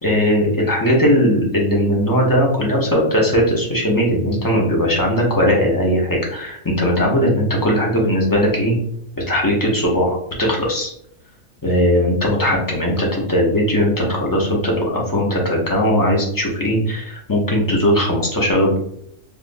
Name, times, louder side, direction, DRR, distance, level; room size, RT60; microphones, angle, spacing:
voice 1, 0.0-8.7 9.2-10.9 11.6-18.8, equal, 20° left, -3 dB, 0.6 m, -18 dB
3.5 x 2.6 x 2.5 m, 0.69 s
omnidirectional pair, 1.4 m